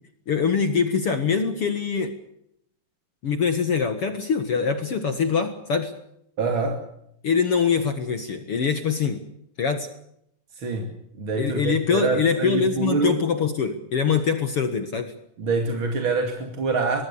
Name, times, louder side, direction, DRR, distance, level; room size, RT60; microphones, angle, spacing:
voice 1, 0.3-2.1 3.2-5.9 7.2-9.2 9.6-9.9 11.4-15.1, left 6 dB, 65° left, 9 dB, 1.4 m, -23 dB
voice 2, 6.4-6.8 10.5-10.9 11.2-13.2 15.4-17.0, right 4 dB, 35° right, 4 dB, 2.4 m, -25 dB
24.5 x 21.0 x 6.9 m, 0.74 s
omnidirectional pair, 5.1 m